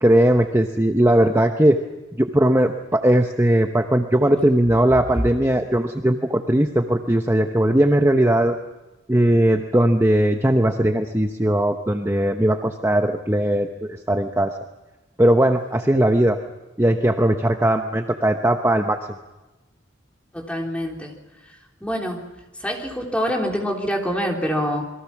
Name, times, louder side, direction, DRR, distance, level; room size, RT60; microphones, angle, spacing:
voice 1, 0.0-1.8 2.2-8.6 9.1-13.7 14.1-14.5 15.2-16.4 16.8-19.0, right 1 dB, 15° right, 5 dB, 1.0 m, -18 dB
voice 2, 20.3-21.1 21.8-22.2 22.6-24.8, equal, 5° left, 0 dB, 3.6 m, -25 dB
28.5 x 22.0 x 6.0 m, 1.1 s
head